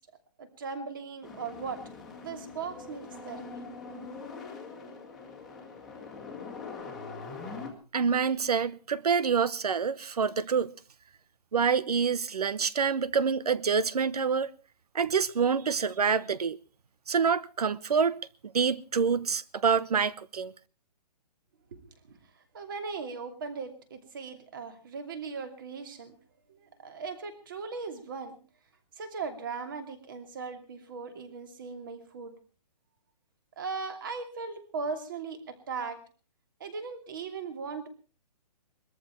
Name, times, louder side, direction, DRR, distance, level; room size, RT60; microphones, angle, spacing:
voice 1, 0.4-1.8 2.2-3.7 21.7-26.1 26.5-28.4 28.9-32.3 33.6-36.0 36.6-37.9, right 5 dB, 30° right, 2.7 m, -38 dB
sound 1, 1.2-7.7, left 4 dB, ahead, 1.9 m, -43 dB
voice 2, 7.9-10.7 11.5-14.5 14.9-16.6 17.1-18.2 18.4-20.5, right 6 dB, 65° right, 1.1 m, -27 dB
21.5 x 14.0 x 4.5 m
hypercardioid pair, 180°, 21 cm